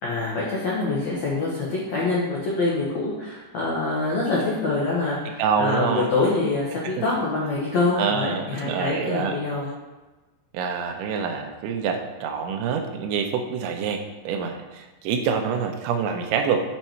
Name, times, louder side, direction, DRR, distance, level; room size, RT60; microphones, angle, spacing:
voice 1, 0.0-9.7, left 3 dB, 85° left, -6 dB, 1.5 m, -25 dB
voice 2, 5.4-6.1 7.0-7.1 8.0-9.3 10.5-16.6, right 6 dB, 80° right, 5 dB, 2.9 m, -26 dB
7.3 x 5.5 x 4.4 m, 1.2 s
omnidirectional pair, 5.4 m